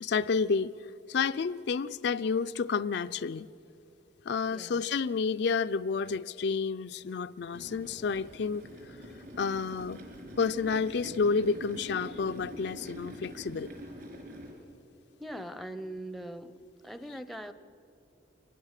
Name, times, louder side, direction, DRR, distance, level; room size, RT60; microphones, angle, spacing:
voice 1, 0.0-0.7 1.1-3.5 4.3-8.7 9.4-10.0 10.4-13.7, left 5 dB, 60° left, 11 dB, 0.4 m, -30 dB
voice 2, 4.5-4.8 15.2-16.5 16.8-17.5, right 1 dB, ahead, 11 dB, 0.6 m, -41 dB
sound 1, 7.5-14.5, equal, 55° right, 4.8 m, -45 dB
24.5 x 19.5 x 6.6 m, 2.9 s
head